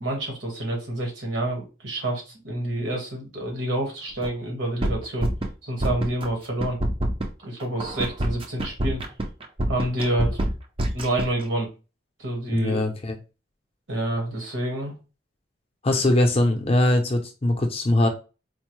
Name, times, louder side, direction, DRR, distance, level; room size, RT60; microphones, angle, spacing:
voice 1, 0.0-5.3 5.6-6.8 7.4-9.0 9.7-10.4 10.9-11.7 12.2-12.8 13.9-14.9, right 1 dB, 75° right, 1 dB, 1.4 m, -28 dB
sound 1, 4.2-4.3 4.6-5.5 5.8-6.3 6.6-11.4, right 1 dB, 25° right, 0.4 m, -26 dB
voice 2, 12.5-13.2 15.8-18.1, left 1 dB, 30° left, 4 dB, 0.5 m, -21 dB
4.3 x 2.0 x 3.0 m, 0.31 s
head